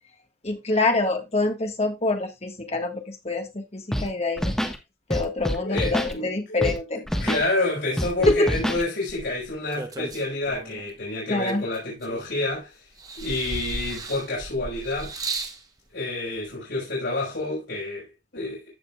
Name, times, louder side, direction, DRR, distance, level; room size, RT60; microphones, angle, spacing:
voice 1, 0.4-4.5 5.1-7.0 8.2-8.5 11.3-11.6, left 2 dB, 35° left, 1.6 m, -25 dB
Scratching (performance technique), 3.9-4.1 4.4-4.8 5.1-6.1 6.6-6.8 7.1-7.4 8.0-8.8, equal, 5° left, 1.3 m, -26 dB
voice 2, 5.5-6.7 7.2-12.8 13.2-15.2 15.9-18.7, left 2 dB, 75° left, 5.3 m, -29 dB
sound 1, 9.1-10.9 11.5-12.5 13.0-15.6 16.5-16.6, right 3 dB, 20° right, 1.1 m, -35 dB
15.0 x 5.3 x 2.4 m
head